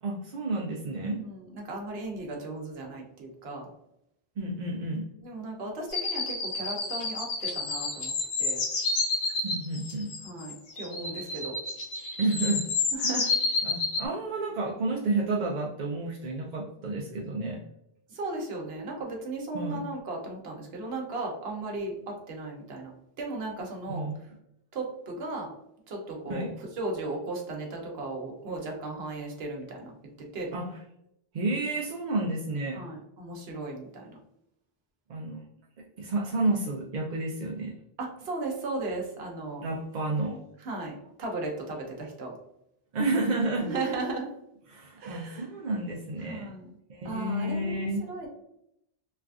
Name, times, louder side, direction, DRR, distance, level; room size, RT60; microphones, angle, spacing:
voice 1, 0.0-1.2 4.4-5.0 9.4-10.1 12.2-12.6 13.0-13.1 13.6-17.6 19.5-19.8 23.9-24.2 26.3-26.5 30.5-30.8 31.3-32.8 35.1-35.5 36.0-37.7 39.6-40.4 42.9-43.7 44.7-46.5 46.9-48.1, right 2 dB, 55° right, -2 dB, 0.5 m, -30 dB
voice 2, 1.1-3.7 5.2-8.1 8.4-8.6 10.2-11.6 12.9-13.3 18.1-22.9 23.2-24.1 24.7-25.5 25.9-26.5 26.8-29.9 30.3-30.5 32.7-34.2 38.0-39.6 40.6-42.3 43.7-44.3 45.0-45.5 46.3-46.7 47.0-48.3, right 2 dB, 75° right, 0 dB, 1.0 m, -36 dB
sound 1, 5.9-14.0, left 3 dB, 90° left, 0.9 m, -30 dB
3.2 x 2.4 x 2.3 m, 0.78 s
omnidirectional pair, 1.0 m